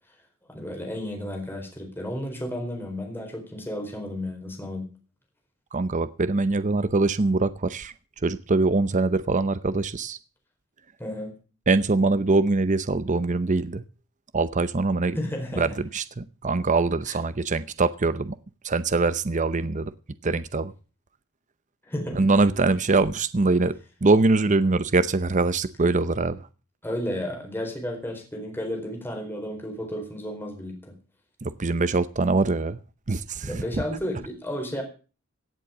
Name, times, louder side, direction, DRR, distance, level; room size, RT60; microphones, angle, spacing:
voice 1, 0.5-4.9 11.0-11.3 15.1-15.7 17.1-17.2 21.8-22.2 26.8-31.0 33.4-34.8, left 1 dB, 10° left, 2 dB, 4.5 m, -32 dB
voice 2, 5.7-7.9 8.2-10.2 11.7-13.8 14.3-15.2 15.6-18.4 18.6-19.9 20.2-20.7 22.1-26.4 31.4-32.8 33.1-33.8, right 3 dB, 35° right, 14 dB, 0.7 m, -23 dB
17.0 x 7.6 x 7.1 m, 0.35 s
head